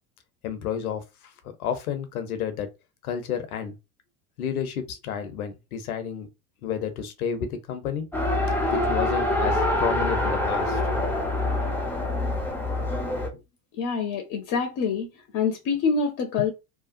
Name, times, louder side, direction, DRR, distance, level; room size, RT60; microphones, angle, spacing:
voice 1, 0.4-1.3 1.6-2.7 3.0-3.7 4.4-6.3 6.6-8.1 8.7-10.9, left 7 dB, 80° left, 0.8 m, -31 dB
Race car auto racing, 8.1-13.3, left 2 dB, 5° left, 0.6 m, -25 dB
voice 2, 13.8-15.1 15.3-16.5, left 5 dB, 40° left, 0.8 m, -25 dB
2.8 x 2.2 x 2.5 m
hypercardioid pair, 80°, 43 cm